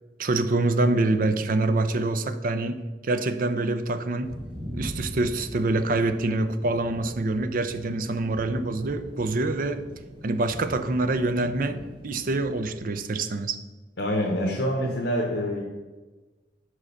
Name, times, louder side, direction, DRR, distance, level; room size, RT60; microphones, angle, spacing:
voice 1, 0.2-4.3 4.7-9.8 10.2-13.6, right 2 dB, 50° right, 10 dB, 0.5 m, -26 dB
sound 1, 4.2-12.8, equal, 30° right, 1.6 m, -41 dB
voice 2, 14.0-15.6, equal, 80° left, -1 dB, 1.1 m, -26 dB
5.6 x 4.9 x 6.4 m, 1.2 s
head